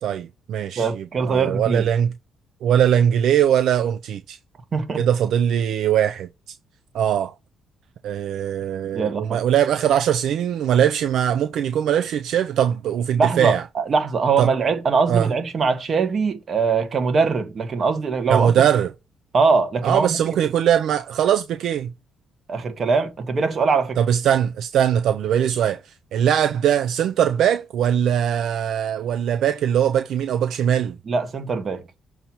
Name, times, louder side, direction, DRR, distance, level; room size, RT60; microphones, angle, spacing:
voice 1, 0.0-2.1 2.6-4.4 5.0-6.3 6.9-7.3 8.0-13.6 14.4-14.5 15.1-15.3 18.3-18.9 19.8-21.9 24.0-31.0, right 9 dB, 75° right, 0.5 m, -21 dB
voice 2, 0.8-1.9 4.7-5.0 8.9-9.4 13.2-18.5 19.3-20.2 22.5-24.0 31.1-31.8, right 5 dB, 45° right, 1.6 m, -22 dB
6.7 x 3.0 x 5.6 m
cardioid pair, 90°, 0 cm